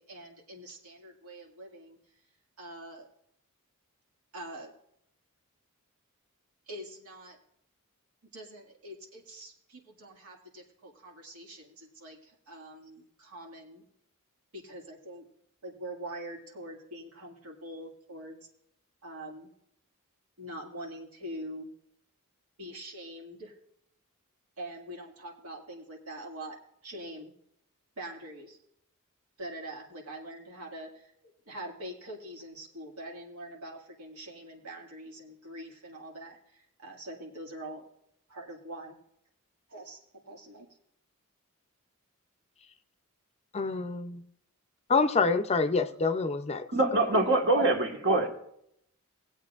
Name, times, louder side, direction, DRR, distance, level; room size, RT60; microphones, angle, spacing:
voice 1, 0.0-2.0 2.6-3.1 4.3-4.7 6.7-7.4 8.3-13.8 14.5-15.3 15.6-18.4 19.0-19.5 20.4-21.7 22.6-23.6 24.6-26.6 26.8-27.3 28.0-28.6 29.4-37.9 38.3-39.0 39.7-40.7, right 1 dB, 85° right, -1 dB, 2.0 m, -44 dB
voice 2, 43.5-44.3 44.9-46.7, left 4 dB, 30° left, 9 dB, 0.5 m, -27 dB
voice 3, 46.7-48.3, right 2 dB, 55° right, 3 dB, 1.5 m, -24 dB
19.5 x 8.2 x 2.4 m, 0.74 s
head